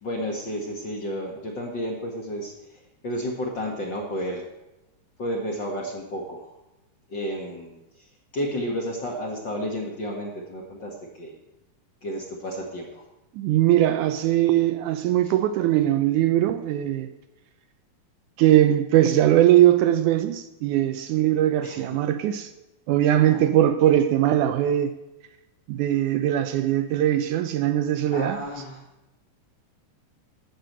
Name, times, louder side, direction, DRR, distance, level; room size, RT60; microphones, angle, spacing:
voice 1, 0.0-2.5 3.0-4.4 5.2-6.5 7.1-7.8 8.3-11.4 12.0-13.0 21.6-22.0 23.1-23.5 28.1-28.8, equal, 45° left, 1.7 m, -31 dB
voice 2, 13.4-17.1 18.4-22.5 22.9-24.9 25.7-28.4, right 12 dB, 80° right, 1.9 m, -20 dB
12.0 x 6.7 x 7.9 m
omnidirectional pair, 3.9 m